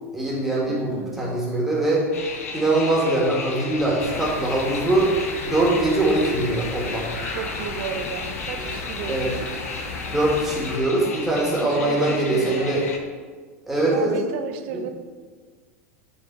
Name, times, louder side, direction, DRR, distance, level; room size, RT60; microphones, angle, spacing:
voice 1, 0.1-2.1 2.5-5.1 5.4-7.1 9.1-9.3 10.1-12.8 13.7-14.2 14.7-14.8, right 2 dB, 5° right, -4 dB, 1.5 m, -22 dB
voice 2, 0.7-1.3 7.3-9.6 11.6-12.8 13.9-14.9, right 8 dB, 50° right, 7 dB, 0.5 m, -33 dB
sound 1, 2.1-13.0, left 4 dB, 70° left, 0.6 m, -34 dB
sound 2, 4.0-10.8, left 2 dB, 35° left, 1.1 m, -35 dB
6.7 x 3.4 x 4.2 m, 1.5 s
figure-of-eight pair, 85°, 8 cm